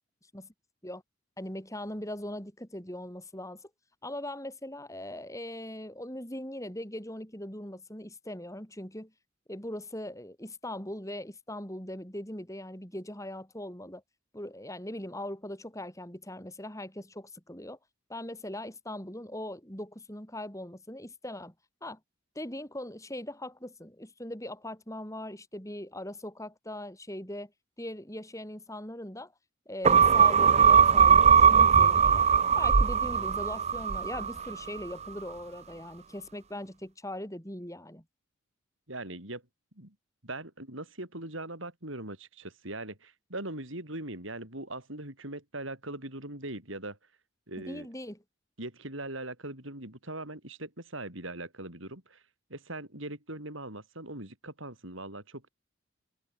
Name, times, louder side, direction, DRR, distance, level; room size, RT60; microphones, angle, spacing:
voice 1, 1.4-3.6 4.0-9.1 9.5-14.0 14.3-17.8 18.1-21.5 21.8-22.0 22.3-27.5 27.8-29.3 29.7-32.2 32.5-38.0 47.7-48.2, left 1 dB, 15° left, 6.5 m, -40 dB
sound 1, 29.8-34.5 34.9-35.0, right 6 dB, 30° right, 0.6 m, -20 dB
voice 2, 38.9-39.4 39.8-40.0 40.2-47.0 47.5-47.9 48.6-52.2 52.5-55.5, right 2 dB, 70° right, 7.4 m, -40 dB
head